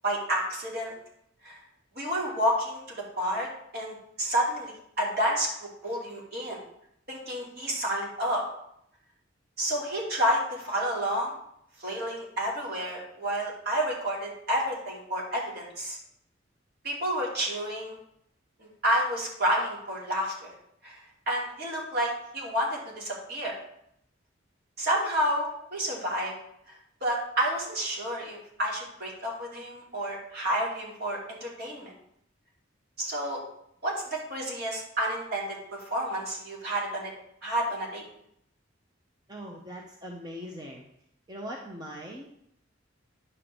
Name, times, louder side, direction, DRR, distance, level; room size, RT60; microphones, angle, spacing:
voice 1, 0.0-0.9 1.4-1.6 1.9-2.8 3.2-3.5 3.7-5.5 5.8-6.6 7.1-8.4 9.6-11.3 11.8-16.0 16.8-18.0 18.6-20.3 20.8-21.0 21.3-23.5 24.8-26.3 26.7-26.8 27.0-31.9 33.0-33.4 33.8-37.1 37.4-38.0, equal, 55° right, -3 dB, 2.7 m, -30 dB
voice 2, 39.3-40.8 41.3-42.4, equal, 20° right, -1 dB, 0.8 m, -41 dB
9.7 x 3.7 x 6.9 m, 0.74 s
head